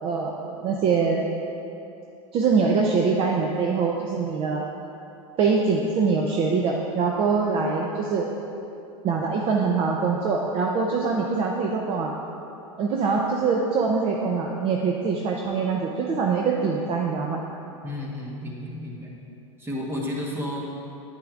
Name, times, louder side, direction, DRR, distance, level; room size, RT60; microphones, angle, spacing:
voice 1, 0.0-1.3 2.3-4.6 5.4-8.3 9.0-12.1 12.8-17.4, right 5 dB, 35° right, 0 dB, 0.6 m, -24 dB
voice 2, 17.8-19.1 19.6-20.6, left 1 dB, 15° right, -2 dB, 1.2 m, -32 dB
9.0 x 8.3 x 2.5 m, 2.9 s
hypercardioid pair, 120°, 17 cm